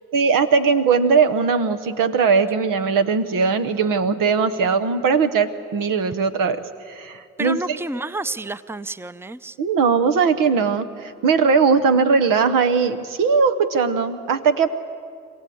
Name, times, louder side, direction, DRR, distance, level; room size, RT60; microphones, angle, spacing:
voice 1, 0.1-6.6 6.9-7.8 9.6-14.7, right 5 dB, 85° right, 9 dB, 1.0 m, -19 dB
voice 2, 7.4-9.6, right 2 dB, 5° right, 15 dB, 0.6 m, -30 dB
25.5 x 17.0 x 8.5 m, 2.3 s
supercardioid pair, 45°, 32 cm